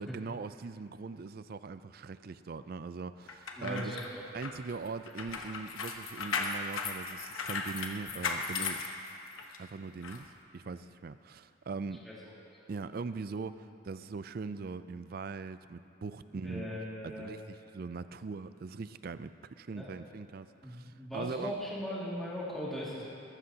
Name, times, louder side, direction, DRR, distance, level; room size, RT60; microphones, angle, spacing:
voice 1, 0.0-4.0 4.3-8.8 9.6-12.0 12.7-21.5, right 4 dB, 45° right, 13 dB, 0.4 m, -41 dB
sound 1, 3.3-9.6 10.0-10.2, left 4 dB, 85° left, 1.1 m, -37 dB
voice 2, 3.6-4.2 9.7-9.8 12.0-12.2 16.4-17.3 19.7-20.1 20.6-23.0, equal, ahead, -8 dB, 2.2 m, -39 dB
21.0 x 13.5 x 2.8 m, 2.5 s
head